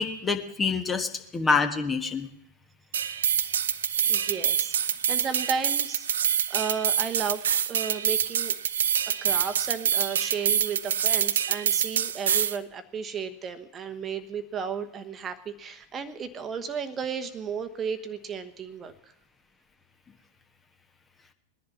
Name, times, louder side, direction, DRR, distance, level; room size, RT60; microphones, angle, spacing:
voice 1, 0.0-2.3, left 4 dB, 15° left, 7 dB, 1.3 m, -26 dB
sound 1, 2.9-12.6, right 8 dB, 65° right, 0.5 m, -26 dB
voice 2, 4.1-6.1 6.5-8.5 9.1-18.9, right 6 dB, 25° right, 8 dB, 1.1 m, -34 dB
19.0 x 10.5 x 5.7 m, 0.79 s
figure-of-eight pair, 90°, 0 cm